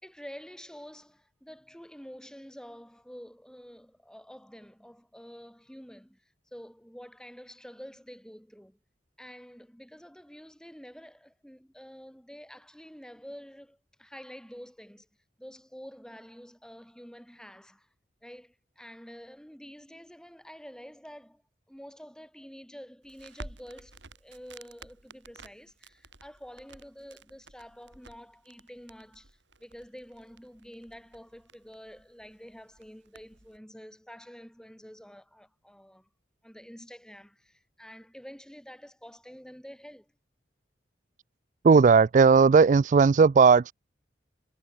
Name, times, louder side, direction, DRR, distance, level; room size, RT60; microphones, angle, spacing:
voice 1, 0.0-6.2 6.5-8.8 9.2-15.1 15.4-17.9 18.2-21.4 21.7-36.1 36.4-40.1, equal, 5° left, 3.2 m, -48 dB
Crackle, 23.0-33.6, right 2 dB, 85° right, 6.4 m, -52 dB
voice 2, 41.6-43.7, right 5 dB, 45° right, 0.3 m, -17 dB
head